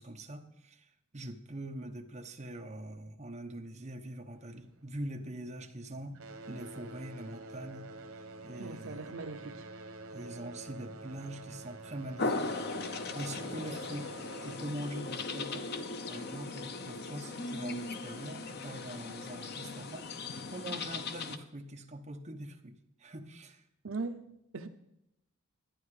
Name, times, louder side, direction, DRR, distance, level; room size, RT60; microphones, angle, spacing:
voice 1, 0.0-6.2 6.5-7.9 8.4-9.2 10.1-12.5 13.1-14.1 14.4-20.1 20.5-23.6, right 1 dB, 30° right, 1.0 m, -43 dB
sound 1, 4.3-5.7 6.0-16.3 17.2-17.3 17.9-18.0 18.7-18.8, right 2 dB, 90° right, 1.1 m, -49 dB
voice 2, 8.6-9.6 23.8-24.7, right 3 dB, 70° right, 0.7 m, -40 dB
sound 2, 12.2-21.4, left 3 dB, 50° left, 0.7 m, -38 dB
12.0 x 10.0 x 4.9 m
head